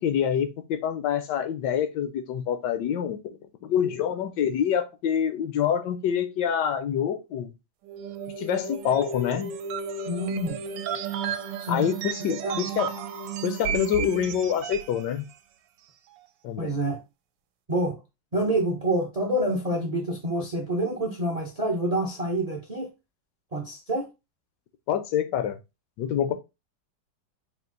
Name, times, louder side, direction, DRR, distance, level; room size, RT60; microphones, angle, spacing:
voice 1, 0.0-3.2 3.6-7.5 8.4-9.6 11.7-12.9 13.4-15.3 16.4-16.8 24.9-25.6 26.0-26.3, left 9 dB, 75° left, 1.2 m, -26 dB
sound 1, 7.9-15.0, right 6 dB, 80° right, 1.2 m, -33 dB
voice 2, 10.1-10.6 11.6-11.9 12.4-12.7 16.6-17.0 17.7-18.0 18.3-22.9 23.5-24.1, right 1 dB, 50° right, 0.4 m, -27 dB
4.4 x 2.4 x 3.8 m
omnidirectional pair, 2.0 m